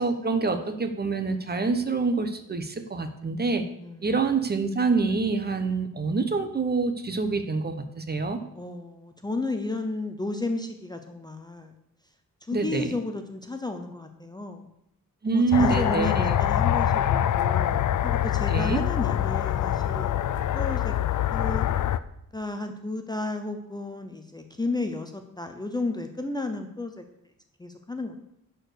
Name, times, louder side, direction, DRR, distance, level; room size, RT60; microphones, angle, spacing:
voice 1, 0.0-3.6 4.0-8.4 12.5-12.9 15.2-16.4 18.5-18.8, right 4 dB, 30° right, 8 dB, 0.9 m, -26 dB
voice 2, 3.8-4.1 8.5-11.7 12.5-14.7 15.3-20.2 20.5-20.9 21.3-21.7 22.3-27.0 27.6-28.2, left 2 dB, 10° left, 5 dB, 0.6 m, -33 dB
sound 1, 15.5-22.0, left 11 dB, 65° left, 0.5 m, -24 dB
11.0 x 4.7 x 6.7 m, 0.79 s
wide cardioid pair, 150°, 33 cm